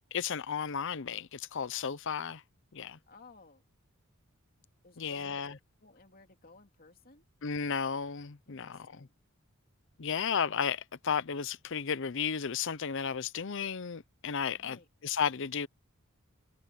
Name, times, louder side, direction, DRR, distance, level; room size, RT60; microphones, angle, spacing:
voice 1, 0.1-2.4 2.7-3.0 5.0-5.6 7.4-9.1 10.0-14.8 15.0-15.7, left 6 dB, 60° left, 0.7 m, -33 dB
voice 2, 3.1-3.6 4.8-7.3 8.5-9.1 14.5-14.9, left 3 dB, 45° left, 3.0 m, -57 dB
head